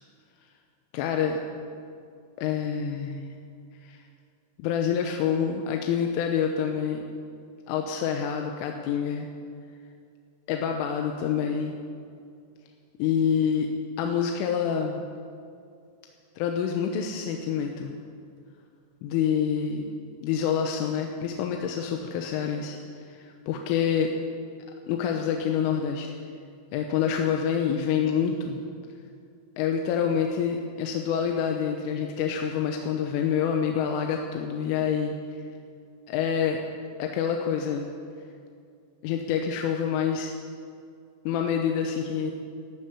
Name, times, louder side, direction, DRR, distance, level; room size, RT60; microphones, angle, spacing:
voice 1, 0.9-1.4 2.4-3.3 3.8-4.0 4.6-7.1 7.7-9.3 10.5-11.8 13.0-13.7 14.0-15.0 16.4-17.9 19.0-19.9 20.2-22.8 23.1-24.1 24.9-26.1 26.7-28.6 29.6-35.4 36.1-36.6 37.0-37.9 39.0-40.4 41.3-42.3, left 7 dB, 80° left, 3 dB, 3.4 m, -27 dB
14.0 x 12.5 x 8.4 m, 2.4 s
omnidirectional pair, 5.9 m